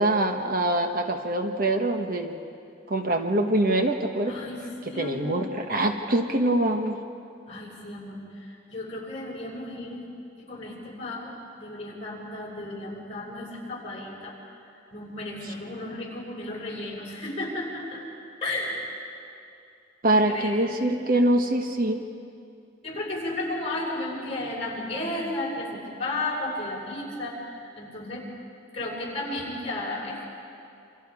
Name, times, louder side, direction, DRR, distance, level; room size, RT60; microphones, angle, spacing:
voice 1, 0.0-2.4 2.9-4.3 4.9-7.0 20.0-22.0, right 1 dB, 45° right, 4 dB, 1.3 m, -24 dB
voice 2, 4.3-5.5 7.5-10.1 10.4-14.3 14.9-18.0 18.4-18.8 20.0-20.5 22.8-28.2 28.7-30.2, left 2 dB, 30° left, -4 dB, 6.0 m, -34 dB
28.5 x 27.0 x 4.9 m, 2.5 s
head